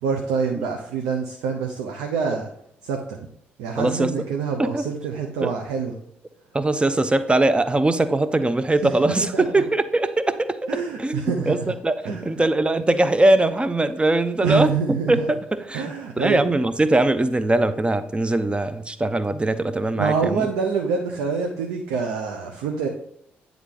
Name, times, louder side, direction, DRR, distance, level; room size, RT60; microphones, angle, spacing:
voice 1, 0.0-2.5 2.8-3.2 3.6-5.9 8.8-9.4 10.7-11.6 12.0-12.4 14.4-15.2 15.7-16.5 20.0-22.9, right 5 dB, 70° right, 2 dB, 0.6 m, -26 dB
voice 2, 3.8-4.2 4.6-4.9 5.4-5.5 6.5-20.5, right 2 dB, 20° right, 13 dB, 0.5 m, -21 dB
9.3 x 3.5 x 3.8 m, 0.72 s
figure-of-eight pair, 40°, 6 cm